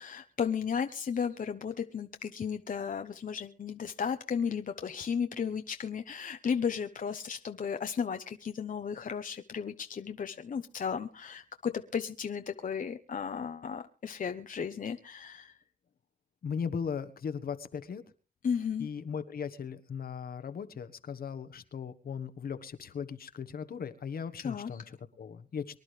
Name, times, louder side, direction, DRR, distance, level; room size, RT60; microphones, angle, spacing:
voice 1, 0.0-15.6 18.4-18.9 24.4-24.8, left 7 dB, 60° left, 7 dB, 1.0 m, -34 dB
voice 2, 16.4-18.0 18.8-25.8, left 6 dB, 75° left, 11 dB, 1.4 m, -38 dB
24.0 x 11.0 x 3.3 m, 0.36 s
cardioid pair, 65°, 16 cm